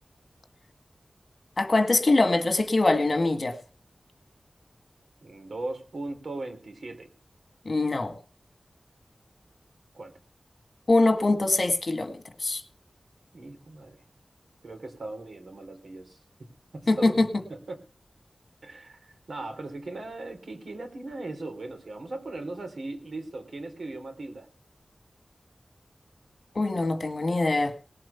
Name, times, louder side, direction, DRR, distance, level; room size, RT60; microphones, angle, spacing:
voice 1, 1.6-3.6 7.7-8.2 10.9-12.6 16.9-17.3 26.6-27.7, left 2 dB, 55° left, 2.0 m, -23 dB
voice 2, 5.2-7.1 9.9-10.1 13.3-14.0 14.6-16.2 16.7-17.8 18.6-24.5, right 2 dB, 90° right, 3.4 m, -38 dB
19.5 x 7.9 x 5.9 m
wide cardioid pair, 85°, 0 cm